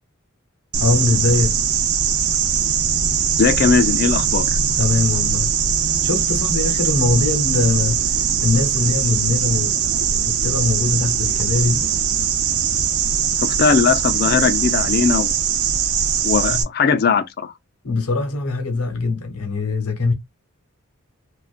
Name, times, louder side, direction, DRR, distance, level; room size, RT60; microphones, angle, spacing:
sound 1, 0.7-16.6, right 7 dB, 80° right, 0.5 m, -21 dB
voice 1, 0.8-1.6 4.8-5.6 6.0-9.8 10.2-11.9 16.5-16.7 17.8-20.1, left 3 dB, 90° left, 0.8 m, -22 dB
voice 2, 3.4-4.5 13.4-15.3 16.2-17.5, left 5 dB, 45° left, 0.3 m, -18 dB
2.4 x 2.1 x 2.4 m
head